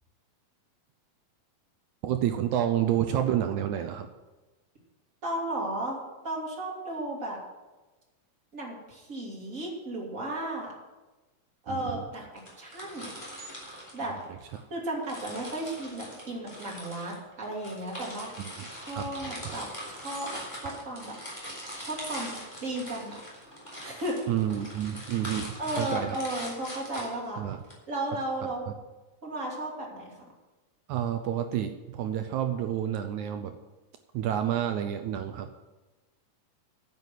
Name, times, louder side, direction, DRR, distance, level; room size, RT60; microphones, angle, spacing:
voice 1, 2.0-4.1 11.7-12.0 14.1-14.4 18.4-18.7 18.9-19.1 24.3-26.2 27.4-27.6 28.7-28.8 30.9-33.6 34.1-35.5, right 10 dB, 80° right, 7 dB, 1.7 m, -29 dB
voice 2, 5.2-7.4 8.5-10.7 11.6-13.1 13.9-14.1 14.7-18.3 18.7-21.2 21.8-23.2 23.8-24.2 25.6-27.4 27.9-28.6 29.2-30.1, right 1 dB, 25° right, -2 dB, 2.7 m, -34 dB
sound 1, 12.4-14.6 15.0-27.7, equal, 10° left, 3.4 m, -42 dB
10.5 x 8.1 x 7.5 m, 1.2 s
omnidirectional pair, 4.1 m